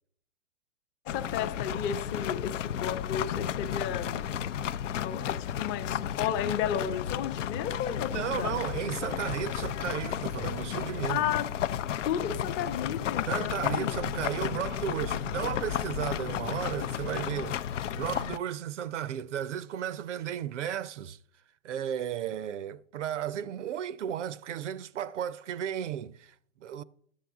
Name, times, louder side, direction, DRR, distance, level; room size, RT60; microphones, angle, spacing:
sound 1, 1.1-18.4, left 10 dB, 80° left, 0.5 m, -33 dB
voice 1, 1.1-8.5 11.1-11.5 12.0-14.0, left 9 dB, 30° left, 0.7 m, -33 dB
voice 2, 8.1-11.2 13.3-21.2 21.6-26.8, right 10 dB, 80° right, 0.6 m, -34 dB
11.0 x 7.6 x 3.5 m
hypercardioid pair, 115°, 36 cm